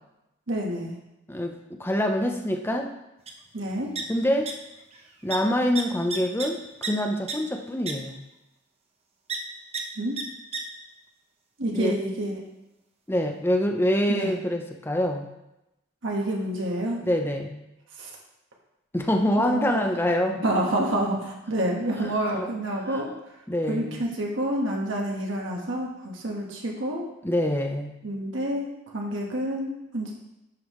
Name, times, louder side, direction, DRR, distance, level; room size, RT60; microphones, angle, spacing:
voice 1, 0.5-0.9 3.5-3.9 10.0-10.2 11.6-12.3 14.1-14.3 16.0-17.0 18.0-18.1 19.4-19.7 20.3-23.1 23.7-27.0 28.0-30.1, right 1 dB, 75° right, -1 dB, 1.5 m, -28 dB
voice 2, 1.3-2.9 4.1-4.5 5.2-8.2 11.7-11.9 13.1-15.3 17.0-17.6 18.9-20.4 22.3-22.5 22.9-23.0 23.5-24.0 27.2-27.9, equal, 10° left, 3 dB, 0.7 m, -25 dB
sound 1, 3.3-3.4 3.6-4.5 4.8-5.0 5.3-5.4 5.8-6.9 7.3-7.4 7.9-8.0 9.3-9.4 9.7-9.8 10.2-10.3 10.5-10.6, right 5 dB, 30° right, 0.8 m, -32 dB
11.5 x 5.4 x 3.2 m, 0.91 s
head